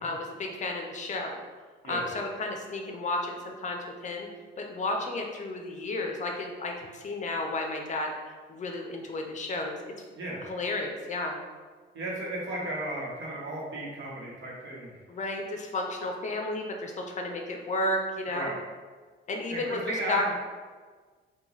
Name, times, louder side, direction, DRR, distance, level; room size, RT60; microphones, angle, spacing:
voice 1, 0.0-1.4 1.8-4.3 4.6-8.1 8.5-9.9 10.4-11.4 15.1-18.5 19.3-19.8 20.1-20.2, left 2 dB, 40° left, 2 dB, 0.5 m, -32 dB
voice 2, 11.9-14.9 18.3-18.5 19.5-20.3, right 1 dB, 75° right, -4 dB, 1.0 m, -34 dB
2.9 x 2.3 x 3.9 m, 1.5 s
cardioid pair, 115°, 19 cm